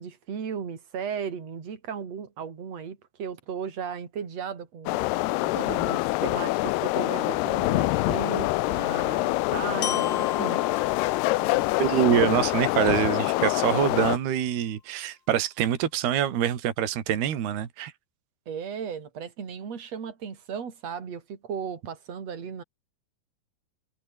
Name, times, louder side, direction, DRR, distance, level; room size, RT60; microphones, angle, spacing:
voice 1, 0.0-5.0 5.5-10.6 18.5-22.6, right 7 dB, 35° right, 4.2 m, -36 dB
sound 1, 4.9-14.2, left 20 dB, 90° left, 2.3 m, -25 dB
Glockenspiel, 9.8-13.8, left 8 dB, 55° left, 4.1 m, -37 dB
voice 2, 11.8-17.9, right 10 dB, 60° right, 4.4 m, -25 dB
omnidirectional pair, 5.3 m